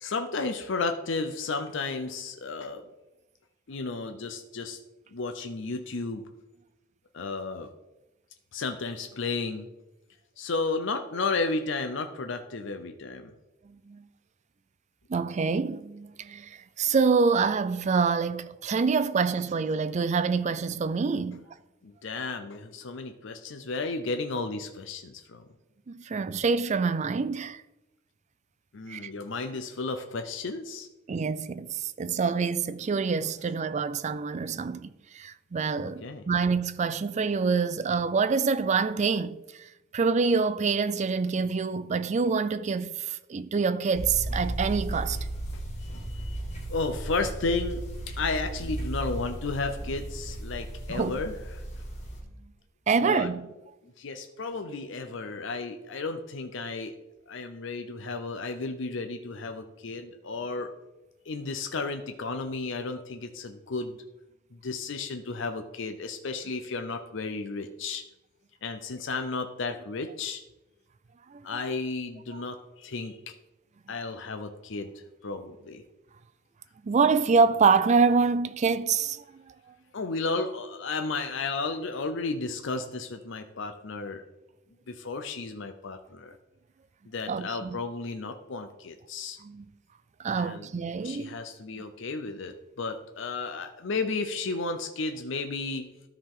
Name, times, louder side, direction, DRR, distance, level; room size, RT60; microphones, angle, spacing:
voice 1, 0.0-2.9 3.7-4.8 5.1-6.3 7.1-7.7 8.5-9.7 10.4-13.3 21.8-25.4 28.7-30.9 35.8-36.2 45.8-46.4 46.7-47.8 48.2-51.6 53.0-53.3 54.0-56.9 57.3-60.7 61.3-64.0 64.5-68.0 68.6-70.4 71.4-73.3 73.9-74.9 75.2-75.8 79.9-84.2 84.9-86.4 87.1-89.4 90.3-90.7 91.0-95.9, left 3 dB, 70° left, 0.6 m, -33 dB
voice 2, 13.7-14.1 15.1-21.4 25.9-27.6 28.9-29.1 31.1-39.7 39.9-45.2 50.9-51.2 52.9-53.5 71.3-71.6 72.3-72.4 76.8-79.4 87.3-87.8 89.4-89.7 90.2-91.4, right 5 dB, 35° right, 0.4 m, -26 dB
sound 1, 43.9-52.2, right 1 dB, 35° left, 2.0 m, -35 dB
13.0 x 4.9 x 3.7 m
head